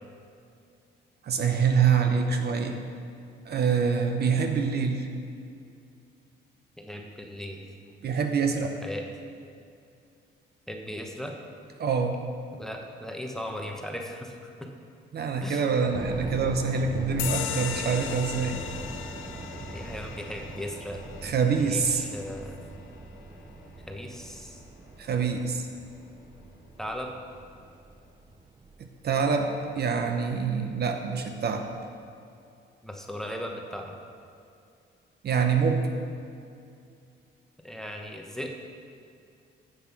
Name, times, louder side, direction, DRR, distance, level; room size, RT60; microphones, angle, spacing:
voice 1, 1.2-2.8 3.4-5.1 8.0-8.7 11.8-12.2 15.1-18.6 21.2-22.0 25.0-25.7 29.0-31.7 35.2-35.9, right 5 dB, 55° right, 5 dB, 0.9 m, -25 dB
voice 2, 6.8-7.6 8.8-9.1 10.7-11.4 12.6-14.7 15.4-15.6 19.7-21.0 21.6-22.6 23.9-24.6 26.8-27.1 32.8-33.9 37.6-38.5, equal, ahead, 2 dB, 1.1 m, -37 dB
sound 1, 15.9-30.8 31.1-31.2 31.8-32.1, right 3 dB, 20° right, 0.5 m, -42 dB
sound 2, 17.2-24.3, left 9 dB, 75° left, 0.6 m, -38 dB
8.1 x 7.3 x 5.9 m, 2.5 s
cardioid pair, 90°, 20 cm